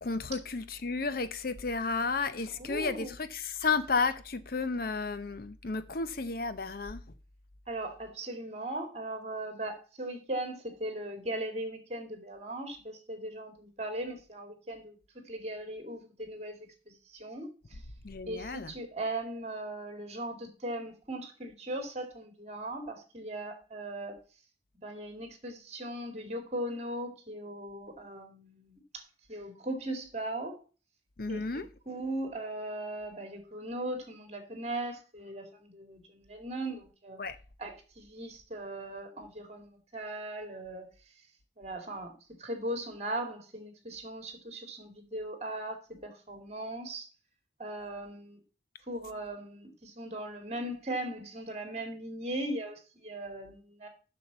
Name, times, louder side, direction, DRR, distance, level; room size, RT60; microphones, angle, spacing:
voice 1, 0.0-7.0 18.0-18.7 31.2-31.7 37.2-37.4, left 4 dB, 50° left, 0.7 m, -32 dB
voice 2, 2.6-3.1 7.7-17.8 18.2-24.2 24.8-29.0 29.3-30.6 31.3-37.2 37.6-40.9 41.6-47.1 47.6-48.4 48.9-53.9, right 1 dB, 35° right, 2.4 m, -38 dB
7.2 x 6.5 x 7.0 m
head